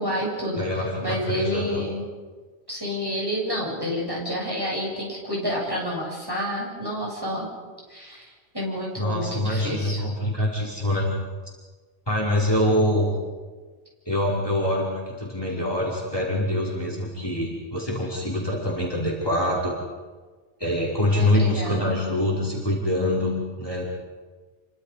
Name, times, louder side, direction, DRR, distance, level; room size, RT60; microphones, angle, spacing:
voice 1, 0.0-0.7 1.0-2.1 2.7-7.5 7.9-8.3 8.5-10.0 21.0-22.0, equal, 20° right, -4 dB, 8.0 m, -29 dB
voice 2, 0.6-1.8 9.0-11.1 12.1-13.1 14.1-14.9 15.2-19.7 20.6-23.9, left 1 dB, 20° left, -5 dB, 5.2 m, -25 dB
29.5 x 25.0 x 5.1 m, 1.4 s
omnidirectional pair, 1.1 m